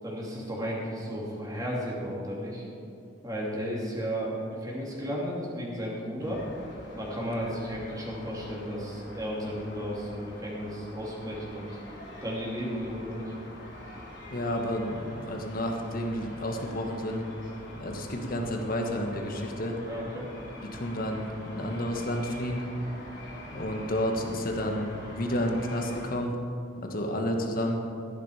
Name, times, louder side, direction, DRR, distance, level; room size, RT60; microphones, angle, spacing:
voice 1, 0.0-2.7 3.2-6.4 6.9-11.7 12.2-13.3 19.8-20.3, equal, 20° right, -4 dB, 2.6 m, -34 dB
sound 1, 6.2-26.1, left 1 dB, 65° left, 3.5 m, -45 dB
voice 2, 14.3-17.2 17.8-19.7 20.7-22.6 23.5-26.3 26.8-27.8, equal, 50° left, 3 dB, 1.5 m, -31 dB
13.5 x 11.0 x 4.9 m, 2.6 s
head